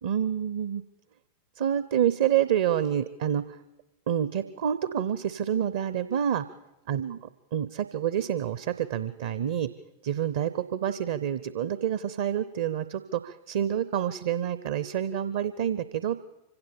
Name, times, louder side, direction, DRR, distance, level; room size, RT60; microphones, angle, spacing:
voice 1, 0.0-0.8 1.6-3.6 4.1-6.4 6.9-7.2 7.5-9.7 10.0-16.2, right 9 dB, 55° right, 14 dB, 0.7 m, -28 dB
25.0 x 16.5 x 7.1 m, 0.95 s
figure-of-eight pair, 90°, 0 cm